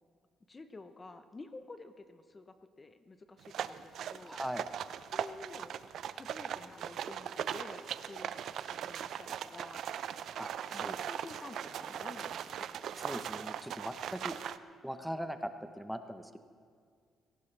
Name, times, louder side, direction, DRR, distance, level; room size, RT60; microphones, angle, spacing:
voice 1, 0.5-4.4 5.1-5.8 6.1-9.8 10.7-12.8, left 3 dB, 30° left, 10 dB, 0.8 m, -50 dB
sound 1, 3.4-14.6, right 9 dB, 70° right, 0.5 m, -39 dB
voice 2, 4.2-4.6 10.4-11.0 13.0-14.4 14.8-16.4, equal, ahead, 8 dB, 0.8 m, -40 dB
19.0 x 17.5 x 3.3 m, 2.1 s
cardioid pair, 90°, 0 cm